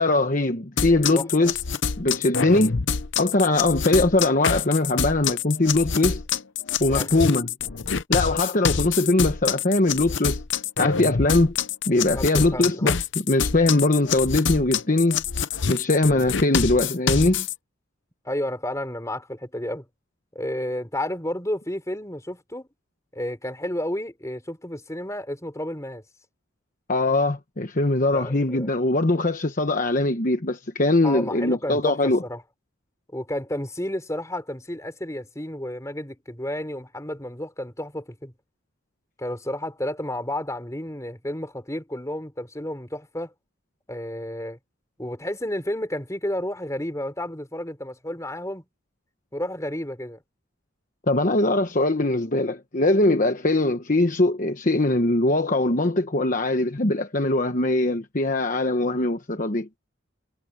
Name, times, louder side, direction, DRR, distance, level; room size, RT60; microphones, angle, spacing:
voice 1, 0.0-1.6 2.0-2.8 3.2-6.2 6.8-7.5 8.1-10.4 10.8-11.5 11.9-12.9 13.3-15.2 15.7-17.5 26.9-32.2 51.1-59.7, left 2 dB, 40° left, 1.1 m, -21 dB
sound 1, 0.8-17.5, left 6 dB, 60° left, 0.8 m, -26 dB
voice 2, 1.1-1.5 6.8-7.3 12.1-12.9 18.2-19.9 20.3-22.7 23.1-26.0 28.1-28.7 31.0-32.4 33.1-38.3 39.2-43.3 43.9-44.6 45.0-48.6 49.3-50.2, left 1 dB, 15° left, 4.4 m, -31 dB
head